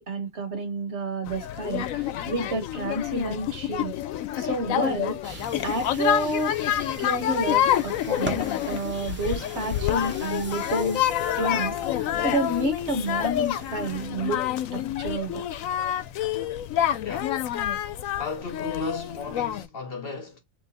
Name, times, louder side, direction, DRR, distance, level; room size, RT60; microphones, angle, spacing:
voice 1, 0.0-4.0 4.4-6.6 7.0-11.0 11.3-14.5 14.7-15.4, right 2 dB, 60° right, 1.3 m, -30 dB
sound 1, 1.3-19.7, left 11 dB, 85° left, 1.0 m, -28 dB
sound 2, 5.2-14.1, right 1 dB, 10° right, 0.7 m, -41 dB
voice 2, 17.0-20.4, left 4 dB, 50° left, 1.0 m, -35 dB
3.4 x 3.1 x 4.0 m
omnidirectional pair, 1.4 m